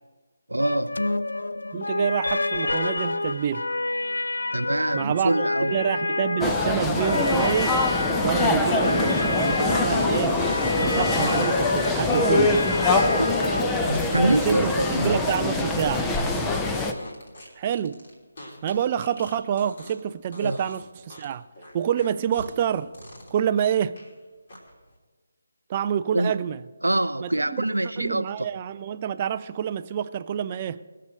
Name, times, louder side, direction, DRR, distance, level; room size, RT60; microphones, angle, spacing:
voice 1, 0.5-1.1 4.5-5.8 13.2-15.2 20.4-20.6 26.1-26.3 26.8-28.5, right 1 dB, 75° right, 0.5 m, -25 dB
sound 1, 0.6-14.0, left 2 dB, 65° left, 0.4 m, -28 dB
voice 2, 1.7-3.7 4.9-7.8 8.2-10.4 10.8-12.6 14.3-16.1 17.6-18.0 18.6-21.4 21.7-22.9 23.3-24.0 25.7-26.6 27.2-27.6 28.0-30.8, right 9 dB, 25° right, 0.4 m, -27 dB
sound 2, 6.4-16.9, left 3 dB, 10° left, 0.7 m, -24 dB
sound 3, 9.9-20.1 20.3-20.8 21.1-24.1 24.5-24.9, left 1 dB, 45° left, 3.2 m, -44 dB
20.5 x 6.8 x 6.4 m
figure-of-eight pair, 150°, 0 cm